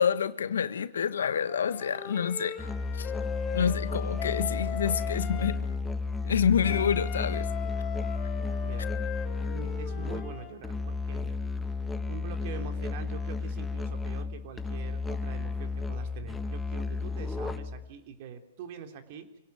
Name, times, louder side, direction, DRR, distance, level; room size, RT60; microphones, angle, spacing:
voice 1, 0.0-3.1 3.5-5.6 6.2-7.5, left 7 dB, 75° left, 1.3 m, -28 dB
Wind instrument woodwind instrument, 1.5-5.6 6.6-10.5, left 9 dB, 30° left, 6.6 m, -39 dB
Musical instrument, 2.6-17.9, left 4 dB, 10° left, 1.5 m, -33 dB
voice 2, 8.6-8.9 9.4-11.4 12.0-19.4, right 7 dB, 50° right, 3.3 m, -44 dB
26.5 x 18.0 x 9.3 m
hypercardioid pair, 115°, 0 cm